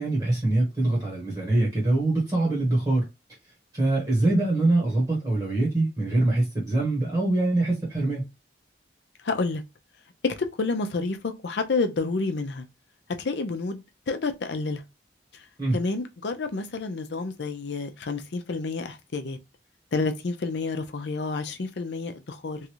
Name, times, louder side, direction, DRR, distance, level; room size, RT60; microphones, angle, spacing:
voice 1, 0.0-3.0 3.7-8.3 15.6-15.8, right 2 dB, 20° right, 1.0 m, -24 dB
voice 2, 9.2-9.6 10.4-12.7 13.2-14.8 15.7-19.4 19.9-22.6, left 3 dB, 75° left, 0.5 m, -29 dB
3.1 x 2.4 x 3.0 m
head